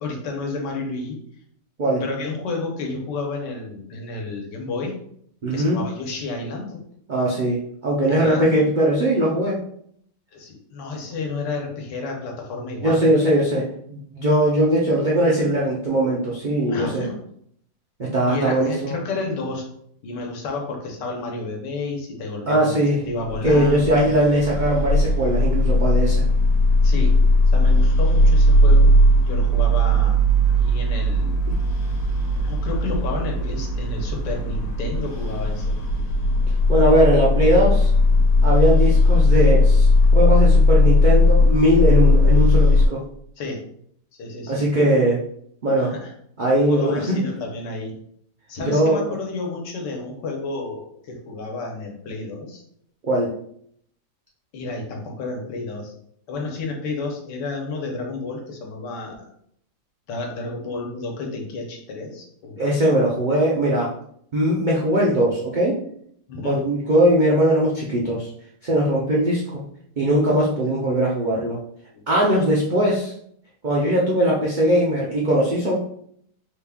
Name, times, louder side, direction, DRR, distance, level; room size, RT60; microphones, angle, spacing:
voice 1, 0.0-1.2 2.0-4.9 5.5-6.8 8.1-8.4 10.3-13.0 16.7-17.2 18.3-19.7 20.0-24.1 26.8-27.2 27.5-30.2 30.5-31.4 32.4-35.8 43.4-43.7 44.2-44.7 45.7-46.1 46.7-47.9 48.5-52.6 54.5-55.9 56.3-59.3 60.1-62.6 66.3-66.6 71.9-72.0, left 3 dB, 90° left, 1 dB, 1.5 m, -31 dB
voice 2, 5.4-5.8 7.1-9.6 12.8-17.0 18.0-19.0 22.5-23.0 23.4-26.2 36.7-37.9 38.4-39.9 40.1-43.0 44.5-45.2 45.6-45.9 46.4-47.2 48.7-49.0 53.0-53.3 62.6-63.9 64.3-65.8 66.4-68.3 68.6-69.6 70.0-71.6 72.1-73.1 73.6-75.7, right 1 dB, 85° right, -5 dB, 0.4 m, -20 dB
sound 1, 23.2-42.9, left 1 dB, 65° left, 1.2 m, -17 dB
4.2 x 2.3 x 3.5 m, 0.67 s
omnidirectional pair, 1.8 m